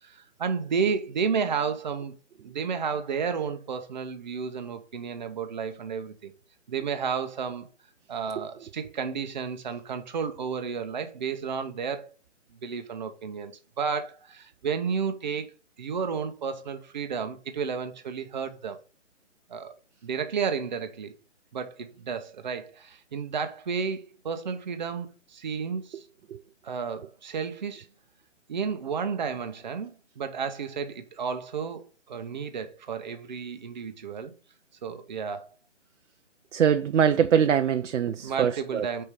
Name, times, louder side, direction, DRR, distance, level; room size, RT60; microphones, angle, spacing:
voice 1, 0.0-2.1 2.4-6.3 6.7-7.7 8.1-12.1 12.6-15.5 15.8-18.8 19.5-19.7 20.0-21.1 21.5-26.0 26.6-27.9 28.5-34.3 34.8-35.5 38.2-39.0, right 6 dB, 40° right, 0.8 m, -32 dB
voice 2, 36.5-38.9, right 8 dB, 80° right, 0.6 m, -23 dB
5.2 x 4.4 x 4.7 m
hypercardioid pair, 165°, 37 cm